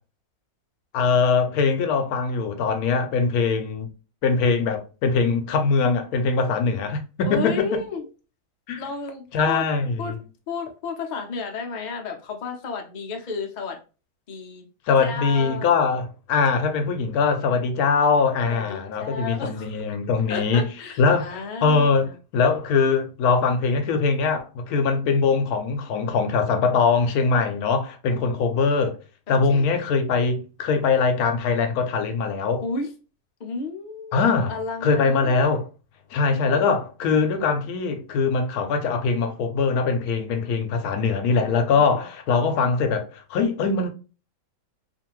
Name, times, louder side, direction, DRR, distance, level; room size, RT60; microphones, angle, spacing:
voice 1, 0.9-3.9 4.2-7.6 8.7-8.8 9.3-10.2 14.9-20.7 21.0-29.0 29.3-32.6 34.1-35.7 36.1-43.9, left 4 dB, 80° left, 1.1 m, -22 dB
voice 2, 7.3-8.1 8.8-9.6 10.0-10.1 10.5-13.8 14.3-14.7 15.0-15.7 18.5-19.7 20.3-22.1 29.3-29.6 32.6-32.9 33.4-34.2 34.5-35.3 36.3-36.7 41.7-42.0, left 4 dB, 55° left, 0.5 m, -32 dB
2.6 x 2.5 x 2.9 m
omnidirectional pair, 1.5 m